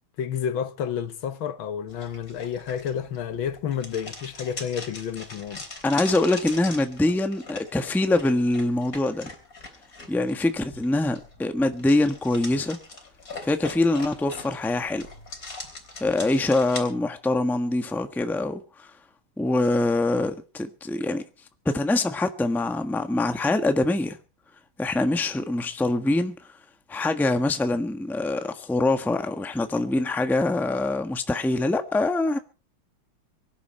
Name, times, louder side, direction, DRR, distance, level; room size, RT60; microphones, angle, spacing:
voice 1, 0.2-5.6, left 8 dB, 75° left, 1.9 m, -30 dB
sound 1, 1.9-16.8, left 3 dB, 40° left, 4.1 m, -41 dB
voice 2, 5.8-9.3 10.1-12.8 13.4-15.1 16.0-18.9 19.4-21.2 21.6-24.2 24.8-26.3 26.9-32.4, left 2 dB, ahead, 1.0 m, -24 dB
24.0 x 11.0 x 4.4 m
omnidirectional pair, 2.2 m